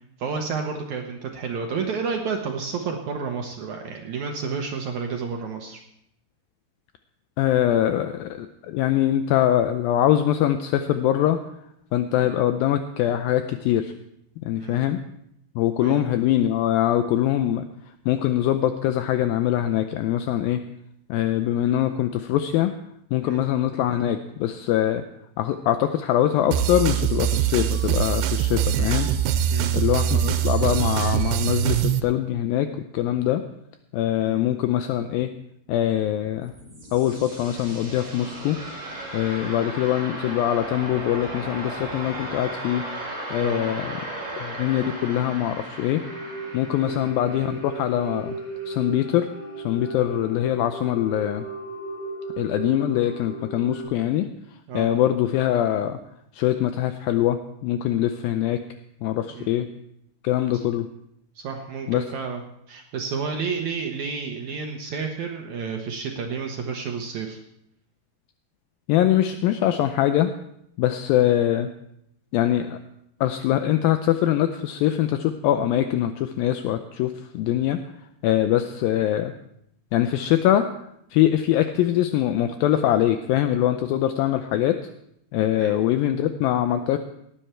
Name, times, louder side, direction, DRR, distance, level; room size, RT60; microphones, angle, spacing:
voice 1, 0.2-5.8 12.2-12.3 14.5-14.8 15.8-16.1 23.2-23.4 29.5-29.8 34.2-34.4 39.4-39.7 43.4-43.7 46.9-47.0 54.7-54.9 59.3-59.5 60.5-60.6 61.4-62.4 62.7-67.4 85.6-85.8, right 5 dB, 70° right, 3 dB, 1.8 m, -31 dB
voice 2, 7.4-11.4 11.9-13.9 14.4-15.0 15.6-17.6 18.1-20.6 21.1-22.7 23.1-25.0 25.4-29.1 29.7-33.4 33.9-35.3 35.7-36.5 36.9-38.6 39.1-42.8 43.3-44.0 44.4-46.0 46.5-48.4 48.7-49.3 49.7-51.5 52.4-54.3 54.7-56.0 56.3-58.6 59.0-59.7 60.2-60.9 61.9-62.1 68.9-70.3 70.8-71.7 72.3-72.8 73.2-77.8 78.2-79.3 79.9-80.7 81.1-84.9 85.3-87.0, left 12 dB, 80° left, 9 dB, 2.2 m, -23 dB
sound 1, 26.5-32.0, right 9 dB, 90° right, 2.8 m, -23 dB
sound 2, 36.2-49.1, right 1 dB, 30° right, 3.9 m, -36 dB
sound 3, 46.0-53.8, right 2 dB, 50° left, 4.5 m, -36 dB
18.0 x 10.0 x 4.5 m, 0.77 s
omnidirectional pair, 4.6 m